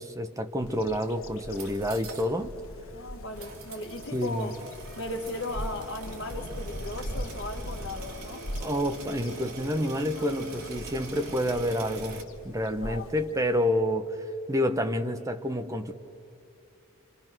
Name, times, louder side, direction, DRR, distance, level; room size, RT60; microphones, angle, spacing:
voice 1, 0.0-2.5 4.1-4.5 8.6-12.2 12.4-14.2 14.5-15.9, equal, 15° right, 1.0 m, -28 dB
Bird vocalization bird call bird song, 0.6-13.9, equal, 75° left, 1.4 m, -41 dB
sound 1, 1.4-2.3 2.6-2.7 3.3-12.2, right 3 dB, 85° right, 2.5 m, -44 dB
voice 2, 2.9-4.6 5.0-8.5 12.8-13.1, left 2 dB, 60° left, 2.0 m, -37 dB
28.0 x 27.5 x 6.2 m
head